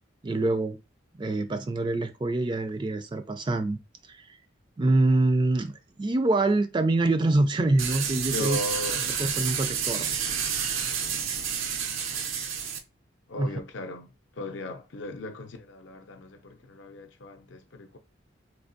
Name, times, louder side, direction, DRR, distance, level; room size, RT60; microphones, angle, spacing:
voice 1, 0.2-0.8 1.2-3.8 4.1-4.4 4.8-5.7 6.0-8.6 9.2-10.1 13.4-13.5, right 2 dB, 25° right, 0.3 m, -25 dB
sound 1, 7.8-12.8, right 7 dB, 85° right, 0.6 m, -29 dB
voice 2, 8.3-9.1 10.8-11.0 13.3-18.0, left 1 dB, 65° left, 0.5 m, -37 dB
3.4 x 2.7 x 2.6 m
head